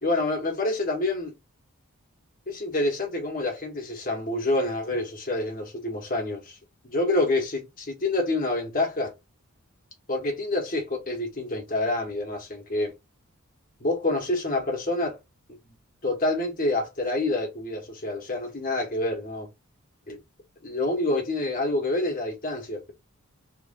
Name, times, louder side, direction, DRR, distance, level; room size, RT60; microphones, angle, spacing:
voice 1, 0.0-1.3 2.5-6.6 6.8-9.1 10.1-12.9 13.8-15.2 15.5-15.6 16.0-19.5 20.1-20.2 20.6-22.9, left 2 dB, 40° left, 1.1 m, -27 dB
3.0 x 2.5 x 2.5 m
head